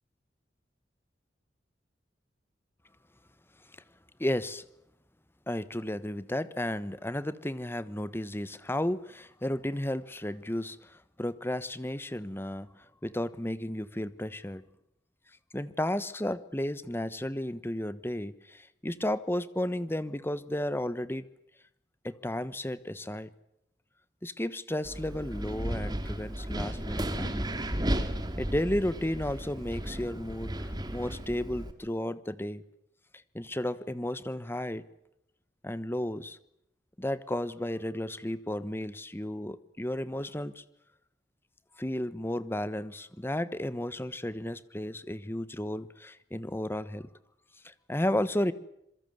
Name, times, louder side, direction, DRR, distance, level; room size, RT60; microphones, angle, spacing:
voice 1, 4.2-4.6 5.5-12.7 13.0-14.6 15.5-21.2 22.0-23.3 24.2-27.4 28.4-32.6 33.3-34.8 35.6-36.4 37.0-40.6 41.8-47.1 47.6-48.5, left 1 dB, 15° left, 15 dB, 1.1 m, -33 dB
Wind, 24.8-31.7, right 1 dB, 25° right, 2.6 m, -34 dB
26.5 x 23.0 x 7.9 m, 0.79 s
head